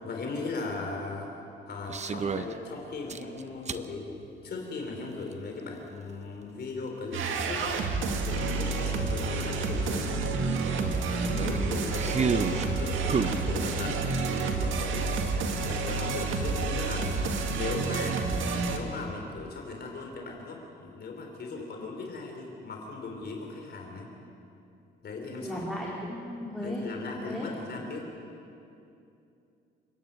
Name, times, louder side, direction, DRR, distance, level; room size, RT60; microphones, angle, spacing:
voice 1, 0.0-1.3 1.7-7.8 8.3-10.1 11.3-15.2 15.6-18.3 18.7-24.1 25.0-25.6 26.6-28.1, left 3 dB, 55° left, 1 dB, 3.6 m, -38 dB
sound 1, 1.9-2.5 3.1-3.9 5.3-5.4 8.1-8.2 8.4-8.5 9.0-9.2 10.8-12.7 13.1-14.5, right 5 dB, 35° right, 0.9 m, -31 dB
sound 2, 7.1-18.8, right 3 dB, 85° right, 1.9 m, -29 dB
voice 2, 11.2-12.4 25.4-26.8 27.1-27.5, left 1 dB, ahead, -4 dB, 3.5 m, -37 dB
29.0 x 10.5 x 8.7 m, 2.7 s
cardioid pair, 90°, 20 cm